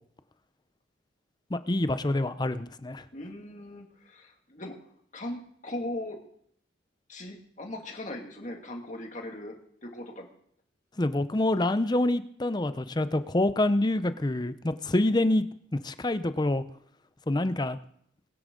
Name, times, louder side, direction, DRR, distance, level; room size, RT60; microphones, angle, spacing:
voice 1, 1.5-3.0 11.0-15.4 15.7-16.6 17.3-17.8, left 1 dB, 20° left, 12 dB, 0.6 m, -26 dB
voice 2, 3.1-4.7 5.1-6.2 7.1-9.6 9.8-10.3, left 1 dB, 40° left, 2 dB, 2.2 m, -39 dB
22.0 x 9.7 x 3.8 m, 0.66 s
head